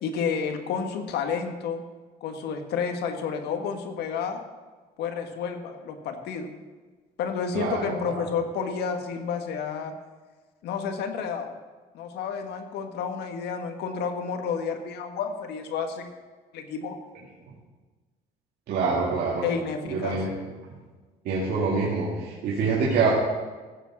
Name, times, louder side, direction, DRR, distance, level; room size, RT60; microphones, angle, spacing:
voice 1, 0.0-1.8 2.2-4.4 5.0-6.5 7.2-9.9 10.6-11.5 11.9-16.1 16.5-16.9 19.4-20.2, left 6 dB, 80° left, 6 dB, 1.6 m, -30 dB
voice 2, 7.5-8.2 18.7-19.4 19.8-20.3 21.2-23.1, right 4 dB, 70° right, -5 dB, 2.5 m, -26 dB
15.5 x 7.3 x 6.3 m, 1.3 s
cardioid pair, 110°, 17 cm